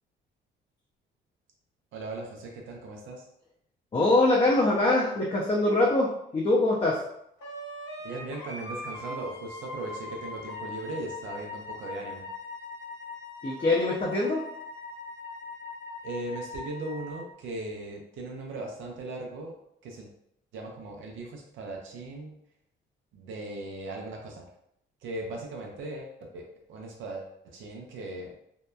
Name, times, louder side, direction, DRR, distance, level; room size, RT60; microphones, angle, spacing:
voice 1, 1.9-3.3 8.0-12.3 16.0-19.6 19.8-20.1 20.5-22.4 23.1-24.5 25.0-26.4 26.7-28.3, right 2 dB, 80° right, 0 dB, 0.5 m, -38 dB
voice 2, 3.9-7.0 13.4-14.4, left 2 dB, 30° left, -4 dB, 0.5 m, -23 dB
Wind instrument woodwind instrument, 7.4-17.3, left 2 dB, 80° left, 0.8 m, -41 dB
2.8 x 2.1 x 2.2 m, 0.76 s
cardioid pair, 90°, 20 cm